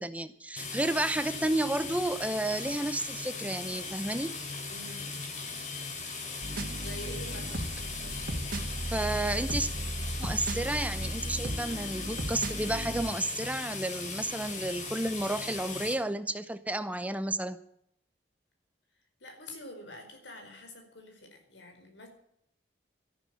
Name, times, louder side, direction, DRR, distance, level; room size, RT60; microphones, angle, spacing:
voice 1, 0.0-4.3 8.9-9.7 10.2-17.6, right 1 dB, 10° right, 12 dB, 0.7 m, -31 dB
sound 1, 0.6-15.9, left 4 dB, 45° left, 3.3 m, -38 dB
voice 2, 4.7-5.1 6.8-7.7 19.2-22.1, left 1 dB, 85° left, 4 dB, 4.9 m, -46 dB
sound 2, 6.4-13.1, right 1 dB, 50° right, 2.0 m, -36 dB
13.5 x 12.0 x 7.7 m, 0.75 s
head